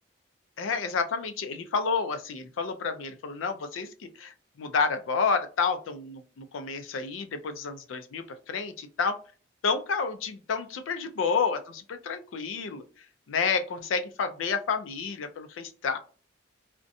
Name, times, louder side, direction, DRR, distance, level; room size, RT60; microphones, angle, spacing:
voice 1, 0.6-9.2 9.6-12.8 13.3-16.0, left 5 dB, 80° left, 9 dB, 0.4 m, -30 dB
2.6 x 2.1 x 2.5 m, 0.39 s
head